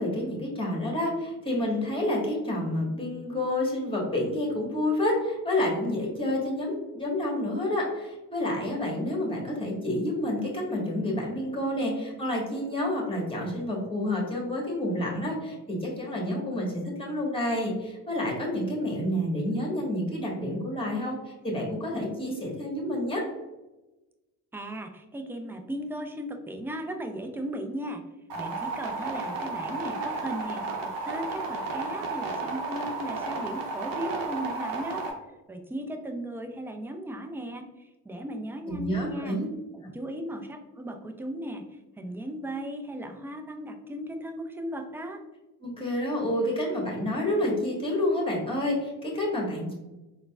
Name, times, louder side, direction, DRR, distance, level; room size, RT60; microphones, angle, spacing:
voice 1, 0.0-23.2 38.7-39.5 45.6-49.7, left 1 dB, 10° left, -2 dB, 1.3 m, -29 dB
voice 2, 24.5-28.0 28.4-35.0 35.5-39.4 39.7-41.6 42.0-45.2, right 1 dB, 5° right, 4 dB, 0.3 m, -36 dB
sound 1, 28.3-35.1, right 3 dB, 50° right, 0.8 m, -33 dB
3.9 x 2.2 x 2.3 m, 1.1 s
hypercardioid pair, 55°, 44 cm